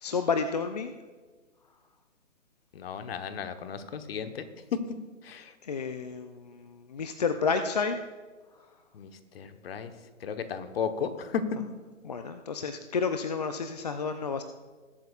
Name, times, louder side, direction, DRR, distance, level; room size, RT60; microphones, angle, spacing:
voice 1, 0.0-0.9 5.6-8.0 12.0-14.4, left 5 dB, 35° left, 8 dB, 0.4 m, -30 dB
voice 2, 2.7-4.4 4.9-5.5 8.9-9.9 10.2-11.4, left 7 dB, 50° left, 9 dB, 1.1 m, -35 dB
21.0 x 8.1 x 2.4 m, 1.4 s
hypercardioid pair, 140°, 38 cm